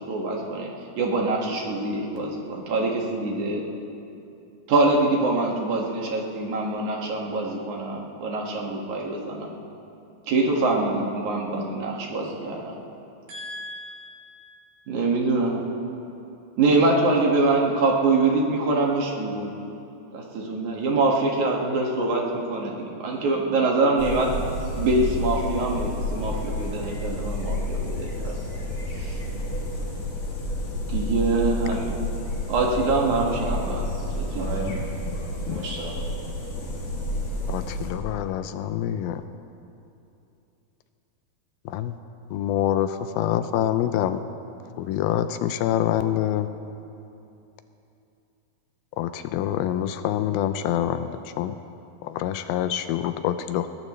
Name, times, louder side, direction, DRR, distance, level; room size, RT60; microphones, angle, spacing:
voice 1, 0.1-0.7 1.0-3.7 4.7-9.5 10.3-12.8 14.9-15.6 16.6-19.5 20.1-24.3 24.8-28.4 29.0-29.2 30.9-32.0 32.5-33.9 34.1-34.4, right 3 dB, 55° right, -1 dB, 3.1 m, -24 dB
voice 2, 13.3-14.6 34.4-34.7 35.5-36.0, right 1 dB, 85° right, -6 dB, 5.7 m, -35 dB
sound 1, 24.0-37.9, left 1 dB, 45° left, 3.5 m, -30 dB
voice 3, 37.5-39.2 41.7-42.0 42.3-44.2 44.8-46.5 49.0-51.6 52.0-53.7, left 11 dB, 80° left, 10 dB, 2.4 m, -26 dB
21.0 x 20.0 x 3.2 m, 2.8 s
omnidirectional pair, 4.4 m